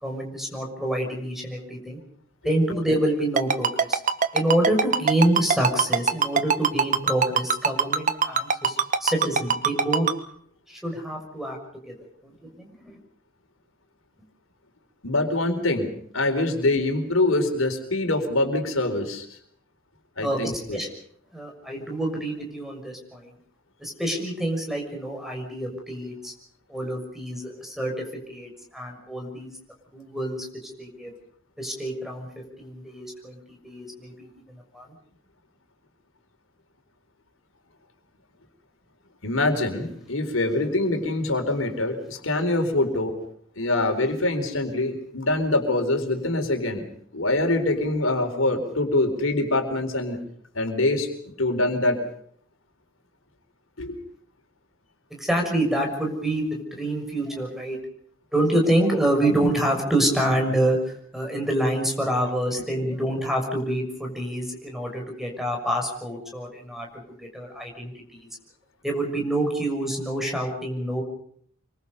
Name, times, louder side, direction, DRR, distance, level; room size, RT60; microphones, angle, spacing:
voice 1, 0.0-2.0 2.4-4.0 4.3-10.1 10.7-11.6 11.9-12.0 12.2-12.9 20.2-20.9 21.3-23.3 23.8-26.3 26.7-27.9 28.3-29.5 29.9-31.1 31.6-32.3 32.6-34.3 34.7-34.9 55.1-57.8 58.3-66.9 67.2-68.3 68.8-71.0, right 1 dB, ahead, 2 dB, 6.4 m, -27 dB
Ringtone, 3.4-10.1, right 5 dB, 40° right, 1.4 m, -20 dB
voice 2, 15.0-19.3 20.2-20.8 39.2-43.2 43.6-46.8 47.1-50.2 50.5-52.0 53.8-54.0, left 2 dB, 75° left, 5 dB, 4.3 m, -24 dB
27.5 x 24.5 x 5.5 m, 0.64 s
head